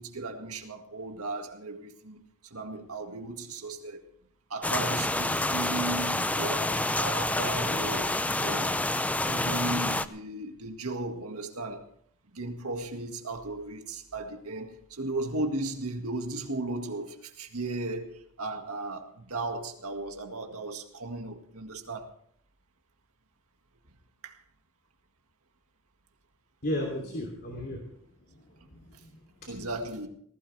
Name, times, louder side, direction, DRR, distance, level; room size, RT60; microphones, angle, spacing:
voice 1, 0.0-2.2 2.5-4.0 4.5-8.9 9.3-11.9 12.3-22.1 24.2-24.4 29.5-30.1, right 2 dB, 75° right, 2.0 m, -36 dB
sound 1, 4.6-10.1, left 1 dB, 5° left, 0.5 m, -28 dB
voice 2, 26.6-29.5, left 1 dB, 45° left, 2.9 m, -36 dB
19.5 x 16.0 x 3.4 m
head